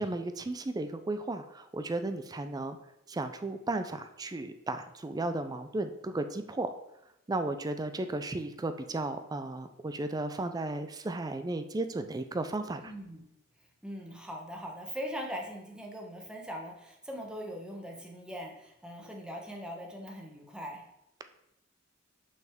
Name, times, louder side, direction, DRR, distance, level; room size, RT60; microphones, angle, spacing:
voice 1, 0.0-2.8 3.1-6.7 7.3-12.9, right 2 dB, 20° right, 9 dB, 0.4 m, -34 dB
voice 2, 12.8-13.2 13.8-20.8, equal, 5° right, 0 dB, 1.0 m, -41 dB
6.0 x 5.5 x 3.6 m, 0.86 s
head